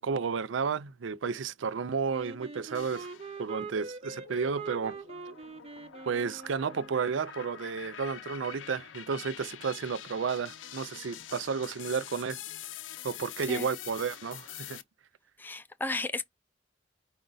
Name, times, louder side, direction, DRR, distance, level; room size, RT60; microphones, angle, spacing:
voice 1, 0.0-3.1 3.4-4.9 6.0-12.4 13.0-14.8, right 5 dB, 90° right, 0.5 m, -32 dB
Wind instrument woodwind instrument, 2.1-7.1, right 4 dB, 35° right, 0.7 m, -43 dB
sound 1, 2.7-3.6 4.1-14.8, left 11 dB, 85° left, 0.5 m, -46 dB
voice 2, 15.4-16.2, left 2 dB, 10° left, 0.3 m, -34 dB
5.0 x 2.4 x 3.9 m
head